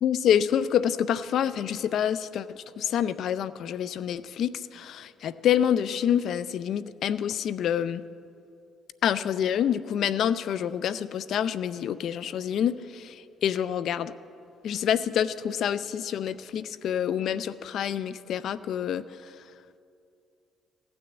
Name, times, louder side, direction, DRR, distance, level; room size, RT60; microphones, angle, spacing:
voice 1, 0.0-8.0 9.0-14.1 14.6-19.0, left 9 dB, 65° left, 16 dB, 0.5 m, -27 dB
15.5 x 9.6 x 8.1 m, 2.5 s
supercardioid pair, 75°, 0 cm